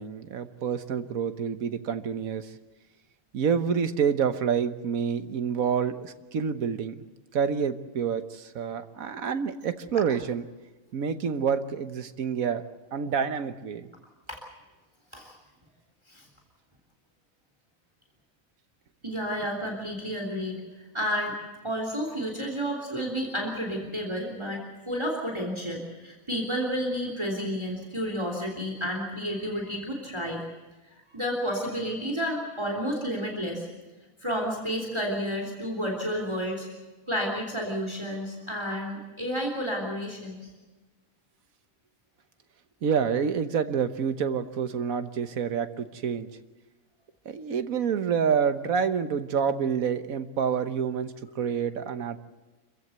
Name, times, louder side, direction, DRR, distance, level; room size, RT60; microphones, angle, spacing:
voice 1, 0.0-2.5 3.3-7.0 7.3-10.4 10.9-12.6 12.9-13.9 42.8-46.3 47.2-52.2, right 7 dB, 85° right, 10 dB, 1.6 m, -28 dB
voice 2, 19.0-20.6 20.9-21.4 21.6-30.4 31.1-33.7 34.2-36.7 37.1-40.5, equal, 20° right, 1 dB, 3.3 m, -31 dB
27.0 x 15.5 x 8.0 m, 1.2 s
omnidirectional pair, 1.4 m